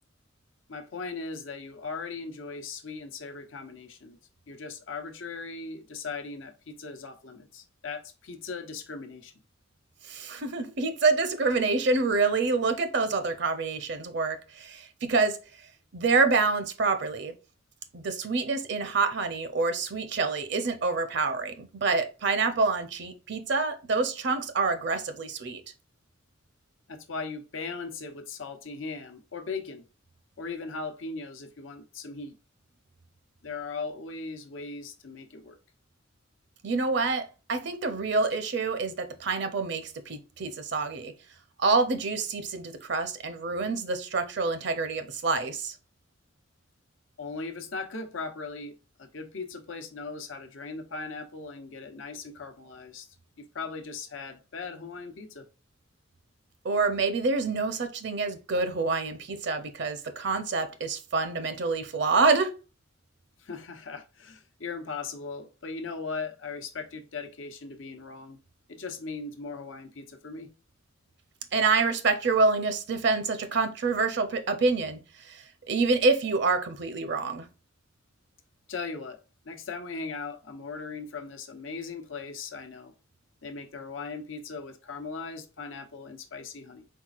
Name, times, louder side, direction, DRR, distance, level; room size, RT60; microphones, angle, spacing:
voice 1, 0.7-4.2 4.5-9.3 26.9-29.9 30.4-32.3 33.4-35.6 47.2-53.1 53.4-55.4 63.4-68.4 68.7-70.5 78.7-79.2 79.4-82.9 83.4-86.9, left 4 dB, 80° left, 0.9 m, -38 dB
voice 2, 10.0-15.4 15.9-17.3 17.9-25.6 36.6-41.1 41.6-45.8 56.6-62.5 71.5-75.0 75.3-77.5, right 4 dB, 60° right, 0.6 m, -27 dB
4.6 x 4.0 x 2.4 m
head